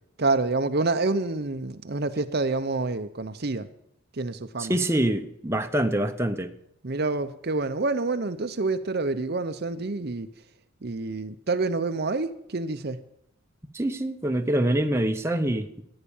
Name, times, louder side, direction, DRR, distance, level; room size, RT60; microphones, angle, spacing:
voice 1, 0.2-3.7 4.1-4.7 6.8-10.3 10.8-13.0, right 3 dB, 50° right, 0.7 m, -27 dB
voice 2, 4.6-6.5 13.7-15.8, right 1 dB, 10° right, 0.9 m, -25 dB
14.5 x 9.8 x 7.1 m
head